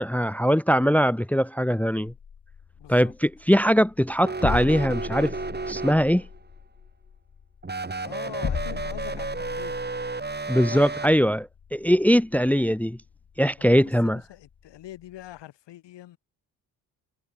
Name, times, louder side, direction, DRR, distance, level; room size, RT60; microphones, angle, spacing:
voice 1, 0.0-2.1 2.9-5.3 5.7-6.2 10.5-13.0 13.4-14.2, equal, 5° left, 0.9 m, -21 dB
sound 1, 2.1-15.4, left 7 dB, 50° left, 3.9 m, -38 dB
voice 2, 2.8-3.1 8.0-9.8 10.7-10.9 13.6-16.2, left 14 dB, 80° left, 5.1 m, -43 dB
sound 2, 4.2-6.4 7.6-11.1, right 3 dB, 25° right, 3.7 m, -33 dB
supercardioid pair, 65°, 42 cm